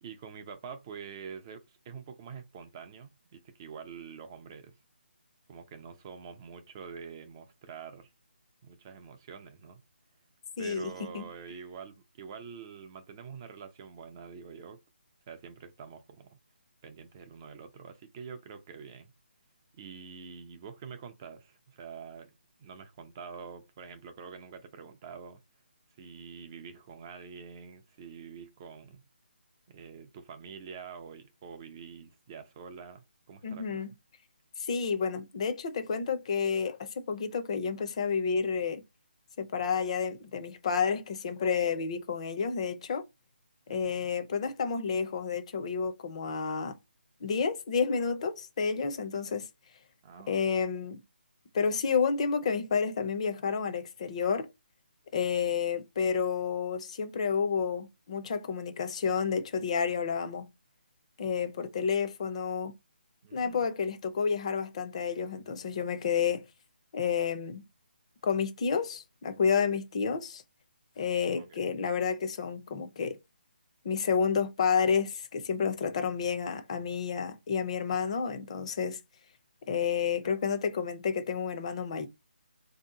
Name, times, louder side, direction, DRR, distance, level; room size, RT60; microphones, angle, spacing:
voice 1, 0.0-4.8 5.5-8.1 8.6-9.8 10.6-14.8 15.3-16.4 16.8-19.1 19.7-22.3 22.6-25.4 26.0-29.0 29.7-33.8 43.7-44.1 50.0-50.5 63.2-63.7 71.4-71.6 80.2-80.4, right 6 dB, 20° right, 0.3 m, -46 dB
voice 2, 10.6-11.3 33.4-33.9 34.6-38.8 39.4-43.0 43.7-46.8 47.2-49.5 50.3-51.0 51.5-54.5 55.1-60.5 61.2-62.7 63.3-66.4 66.9-67.6 68.2-70.4 71.0-73.2 73.8-79.0 79.7-82.1, left 6 dB, 35° left, 0.5 m, -30 dB
3.5 x 2.7 x 3.6 m
hypercardioid pair, 165°, 6 cm